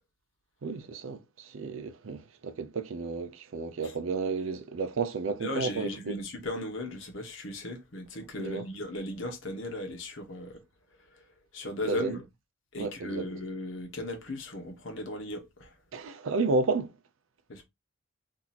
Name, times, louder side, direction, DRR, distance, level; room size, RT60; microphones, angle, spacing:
voice 1, 0.6-6.2 8.4-8.6 11.8-12.2 12.8-13.3 15.9-16.9, right 4 dB, 85° right, 0.5 m, -32 dB
voice 2, 5.4-10.6 11.5-12.2 12.7-15.7 17.5-17.6, left 1 dB, 75° left, 1.0 m, -37 dB
2.9 x 2.6 x 4.0 m
head